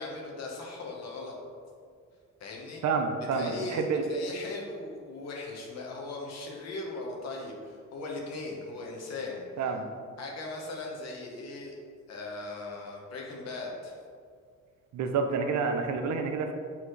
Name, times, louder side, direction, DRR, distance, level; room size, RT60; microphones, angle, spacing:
voice 1, 0.0-1.3 2.4-2.8 3.3-9.4 10.2-11.7 12.1-14.0, left 2 dB, 60° left, -1 dB, 1.2 m, -38 dB
voice 2, 2.8-4.0 9.6-9.9 14.9-16.5, right 5 dB, 70° right, 5 dB, 0.7 m, -29 dB
7.1 x 4.2 x 3.2 m, 2.1 s
cardioid pair, 150°, 30 cm